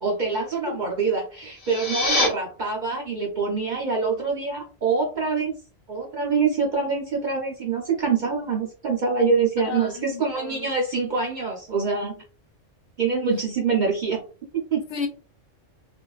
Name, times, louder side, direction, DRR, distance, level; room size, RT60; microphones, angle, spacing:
voice 1, 0.0-5.5 5.9-12.1 13.0-14.2 14.5-14.8, right 4 dB, 55° right, 0.5 m, -25 dB
sound 1, 1.5-2.3, left 2 dB, 40° left, 0.6 m, -24 dB
voice 2, 9.6-10.7 14.9-15.1, left 5 dB, 65° left, 0.8 m, -32 dB
2.4 x 2.2 x 2.3 m
omnidirectional pair, 1.3 m